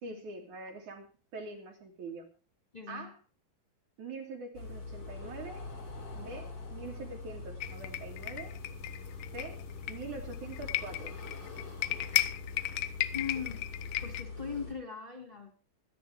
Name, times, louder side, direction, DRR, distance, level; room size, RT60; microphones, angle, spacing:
voice 1, 0.0-2.3 2.9-3.2 4.0-5.7 6.1-8.5 9.3-9.6 9.9-11.1, right 3 dB, 55° right, 3 dB, 3.2 m, -44 dB
voice 2, 2.7-3.1 13.1-13.7 14.0-15.5, left 6 dB, 10° left, 1 dB, 2.9 m, -40 dB
sound 1, 4.5-14.7, left 3 dB, 35° left, 5.2 m, -44 dB
sound 2, 7.6-14.2, left 14 dB, 75° left, 2.4 m, -36 dB
25.5 x 10.0 x 3.4 m, 0.34 s
omnidirectional pair, 4.5 m